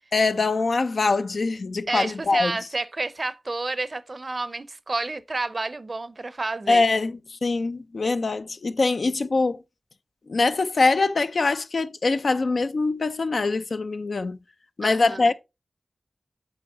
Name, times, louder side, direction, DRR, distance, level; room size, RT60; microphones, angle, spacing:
voice 1, 0.1-2.5 6.7-9.6 10.3-14.4 14.8-15.3, left 3 dB, 70° left, 0.5 m, -23 dB
voice 2, 1.9-6.8 14.8-15.3, right 2 dB, 50° right, 0.5 m, -30 dB
8.0 x 4.0 x 3.8 m
cardioid pair, 55°, 0 cm